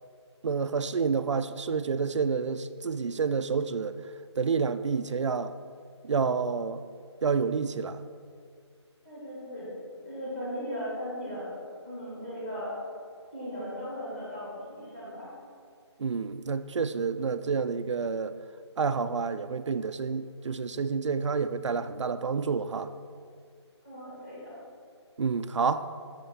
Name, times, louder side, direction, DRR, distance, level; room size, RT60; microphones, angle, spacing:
voice 1, 0.4-4.0 4.4-5.5 6.0-6.8 7.2-8.0 16.0-18.3 18.8-22.9 25.2-25.9, right 5 dB, 85° right, 11 dB, 0.4 m, -29 dB
voice 2, 9.0-9.7 10.0-11.5 11.8-12.8 13.3-15.3 23.8-24.5, equal, 15° left, -9 dB, 1.9 m, -37 dB
6.8 x 6.4 x 4.4 m, 2.2 s
figure-of-eight pair, 170°, 15 cm